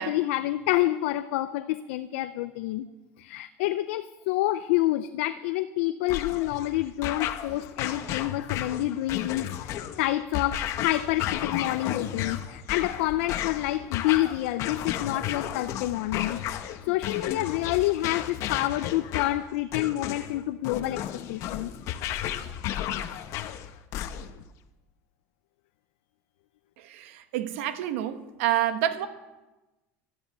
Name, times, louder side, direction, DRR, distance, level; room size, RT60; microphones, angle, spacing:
voice 1, 0.0-2.9 3.2-9.5 10.0-21.7, left 15 dB, 85° left, 10 dB, 0.6 m, -28 dB
sound 1, 6.1-24.5, left 11 dB, 50° left, 0.9 m, -33 dB
voice 2, 12.0-12.6 26.8-29.1, right 12 dB, 85° right, 9 dB, 1.4 m, -29 dB
13.0 x 12.5 x 8.0 m, 1.1 s
cardioid pair, 155°, 7 cm